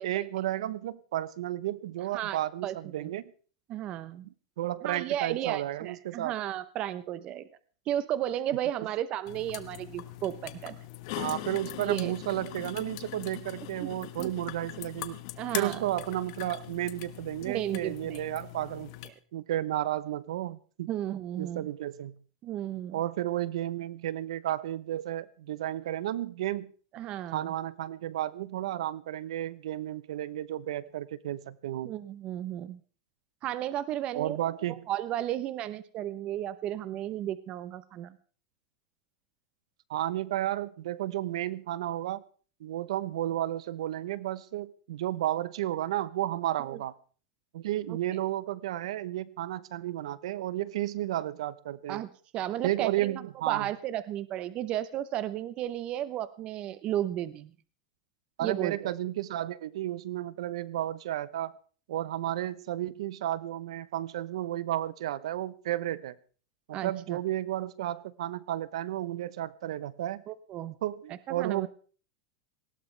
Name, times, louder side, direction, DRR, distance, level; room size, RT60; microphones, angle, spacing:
voice 1, 0.0-3.3 4.2-6.4 11.2-15.2 15.5-18.9 19.3-20.9 21.4-22.2 22.9-26.7 27.3-31.9 34.1-34.8 39.9-42.2 42.6-46.9 47.5-52.0 52.6-53.7 58.4-61.6 61.9-66.2 66.7-70.2 70.8-71.7, right 13 dB, 80° right, 18 dB, 0.9 m, -32 dB
voice 2, 2.1-3.1 3.7-4.3 4.8-7.5 7.9-10.8 11.8-12.1 13.8-13.9 14.2-14.3 15.4-15.8 17.4-18.2 20.9-21.7 22.4-23.0 26.9-27.5 31.8-32.8 33.4-34.4 34.9-38.2 51.9-52.1 52.3-57.5 58.4-58.9 66.7-67.2 70.3-70.7 71.3-71.7, right 12 dB, 35° right, 15 dB, 0.8 m, -34 dB
sound 1, 9.3-19.1, left 17 dB, 55° left, 1.3 m, -41 dB
19.0 x 16.5 x 3.3 m, 0.41 s
supercardioid pair, 150°, 3 cm